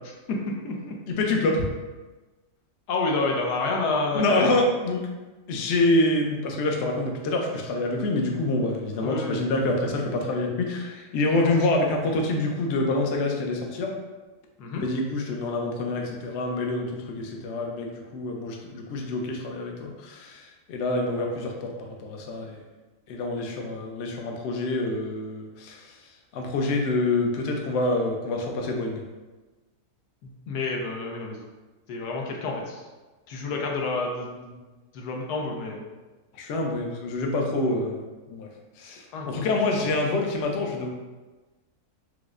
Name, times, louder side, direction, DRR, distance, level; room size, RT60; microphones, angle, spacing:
voice 1, 0.3-0.9 2.9-4.5 9.0-9.4 11.3-11.5 14.6-14.8 30.2-31.4 31.9-32.8 33.3-34.6 34.9-35.8 38.9-39.5, left 3 dB, 90° left, 0 dB, 1.2 m, -29 dB
voice 2, 1.1-1.6 4.1-5.0 5.5-13.9 14.8-22.6 23.1-26.0 26.3-29.0 36.3-38.0 38.3-38.5 38.8-40.9, left 2 dB, 70° left, 1 dB, 0.6 m, -26 dB
4.7 x 2.0 x 2.4 m, 1.2 s
omnidirectional pair, 1.7 m